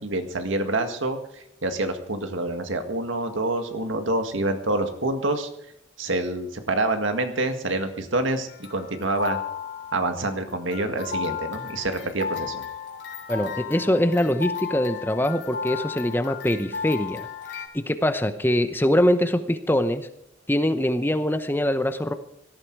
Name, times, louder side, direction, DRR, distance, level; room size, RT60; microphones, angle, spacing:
voice 1, 0.0-5.5 6.0-9.4 9.9-12.6, right 2 dB, 85° right, 7 dB, 1.9 m, -27 dB
sound 1, 8.5-17.7, left 7 dB, 65° left, 3.5 m, -34 dB
voice 2, 13.3-17.3 17.5-17.6 17.9-20.1 20.5-22.1, left 1 dB, 10° left, 9 dB, 0.8 m, -23 dB
17.5 x 13.5 x 4.7 m, 0.76 s
head